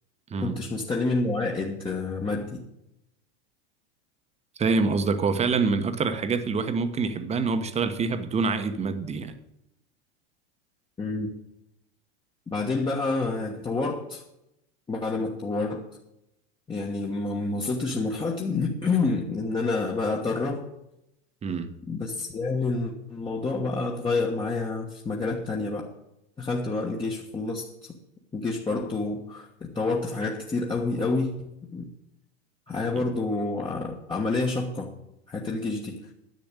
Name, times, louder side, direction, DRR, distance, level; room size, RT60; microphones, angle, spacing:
voice 1, 0.4-2.6 11.0-11.3 12.5-14.2 14.9-15.9 16.7-20.7 21.9-25.9 26.4-27.9 28.3-31.9 32.7-34.9 35.3-36.1, left 3 dB, 15° left, 1.3 m, -28 dB
voice 2, 4.6-9.3 21.4-21.7 32.9-33.1, right 4 dB, 20° right, 1.1 m, -26 dB
10.5 x 7.6 x 8.2 m
supercardioid pair, 125°, 34 cm